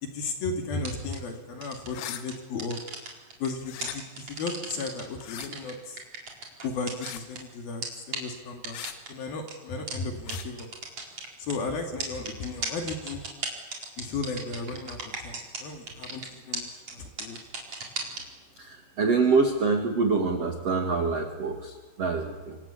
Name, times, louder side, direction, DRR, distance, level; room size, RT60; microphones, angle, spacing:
voice 1, 0.0-2.8 3.4-6.0 6.6-8.8 9.1-10.7 11.4-13.2 14.0-17.4, left 3 dB, 55° left, 4 dB, 3.7 m, -35 dB
sound 1, 0.8-1.2 1.6-1.9 2.3-3.5 3.8-5.0 5.4-7.4 7.8-7.9 8.1-8.2 8.6-9.1 9.5-9.6 9.9-10.0 10.3-10.4 10.6-11.5 12.0-15.6 15.9-16.3 16.5-16.6 16.9-17.0 17.2-18.2, right 4 dB, 30° right, 4.8 m, -34 dB
sound 2, 1.9-2.2 3.6-4.0 5.2-5.5 7.0-7.3 8.7-9.0 10.3-10.5, left 12 dB, 75° left, 3.9 m, -39 dB
voice 2, 18.6-22.6, right 4 dB, 50° right, 4 dB, 1.8 m, -26 dB
28.0 x 25.0 x 8.4 m, 1.2 s
omnidirectional pair, 6.0 m